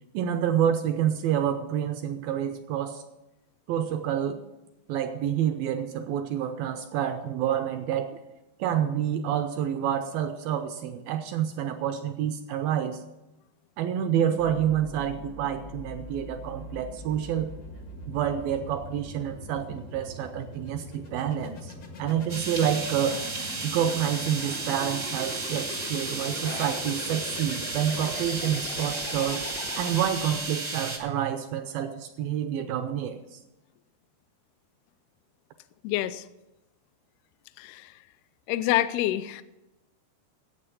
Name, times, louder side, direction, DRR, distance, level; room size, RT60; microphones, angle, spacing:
voice 1, 0.1-3.0 3.7-4.4 4.9-8.1 8.6-13.0 13.8-17.5 18.1-21.7 22.0-23.2 23.6-29.4 29.8-33.4, right 9 dB, 80° right, 8 dB, 2.1 m, -28 dB
sound 1, 14.4-30.5, left 2 dB, 60° left, 1.0 m, -41 dB
sound 2, 21.4-21.7 22.2-25.6 26.3-27.3 27.5-27.6 28.0-29.0, left 1 dB, 25° left, 0.8 m, -45 dB
sound 3, 22.3-31.0, right 3 dB, 55° right, 0.7 m, -34 dB
voice 2, 35.8-36.2 37.6-37.9 38.5-39.4, left 14 dB, 80° left, 12 dB, 2.3 m, -27 dB
12.0 x 8.5 x 6.8 m, 0.99 s
omnidirectional pair, 4.8 m